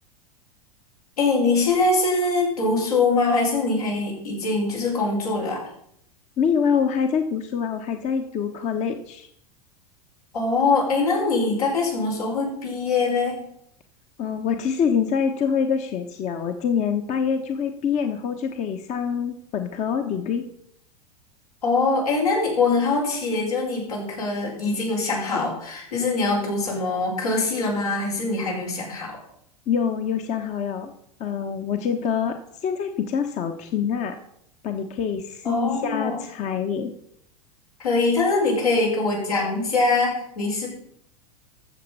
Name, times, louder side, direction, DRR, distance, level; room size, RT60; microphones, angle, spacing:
voice 1, 1.2-5.6 10.3-13.4 21.6-29.1 35.4-36.2 37.8-40.7, left 3 dB, 80° left, -3 dB, 5.6 m, -23 dB
voice 2, 6.4-9.3 14.2-20.5 29.7-30.9 31.2-34.2 34.6-36.9, left 7 dB, 40° left, 6 dB, 1.1 m, -25 dB
14.5 x 6.7 x 5.5 m, 0.71 s
hypercardioid pair, 90°, 19 cm